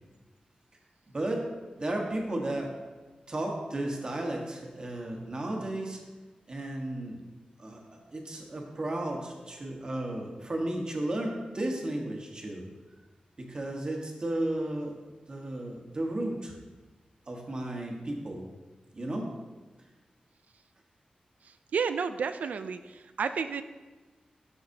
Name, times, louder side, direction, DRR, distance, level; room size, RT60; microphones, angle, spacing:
voice 1, 1.1-1.5 1.8-2.7 3.3-6.0 6.5-7.2 7.6-12.6 13.4-14.9 15.3-16.5 17.3-18.4 18.9-19.3, right 1 dB, 35° right, 0 dB, 1.3 m, -34 dB
voice 2, 21.7-23.6, right 6 dB, 85° right, 10 dB, 0.3 m, -31 dB
12.5 x 5.8 x 2.7 m, 1.3 s
wide cardioid pair, 150°, 3 cm